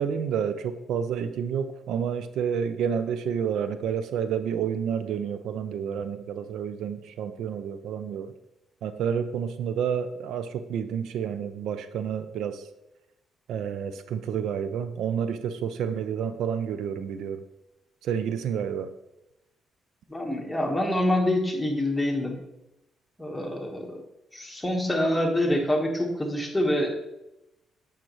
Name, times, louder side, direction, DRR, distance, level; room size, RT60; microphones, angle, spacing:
voice 1, 0.0-8.3 8.8-12.6 13.5-17.4 18.0-18.9, right 7 dB, 80° right, 11 dB, 0.4 m, -29 dB
voice 2, 20.1-22.4 23.2-24.0 24.3-26.9, left 1 dB, 5° left, 1 dB, 1.3 m, -26 dB
8.5 x 5.0 x 3.0 m, 0.92 s
cardioid pair, 90°, 0 cm